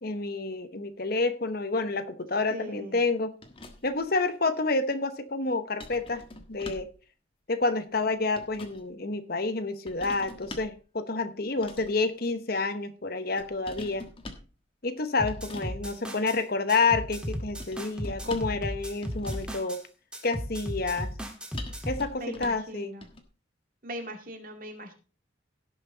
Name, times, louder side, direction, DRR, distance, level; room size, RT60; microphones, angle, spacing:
voice 1, 0.0-3.3 3.8-6.2 6.5-6.9 7.5-14.1 14.8-19.8 20.2-21.1 21.9-22.9, left 3 dB, 50° left, 10 dB, 1.0 m, -29 dB
voice 2, 2.5-3.0 15.6-16.0 22.1-23.1 23.8-24.9, equal, 45° right, 4 dB, 2.2 m, -41 dB
coffee pot, 3.4-4.0 5.8-7.0 8.0-8.8 9.9-10.8 11.5-12.0 13.4-14.5 15.3-15.7 17.6-18.6 19.0-19.6 21.5-22.7 23.0-23.2, left 2 dB, 25° left, 1.4 m, -44 dB
sound 1, 15.2-16.4 16.7-19.8 20.1-22.1, equal, 5° right, 1.8 m, -35 dB
17.0 x 6.2 x 4.0 m, 0.35 s
head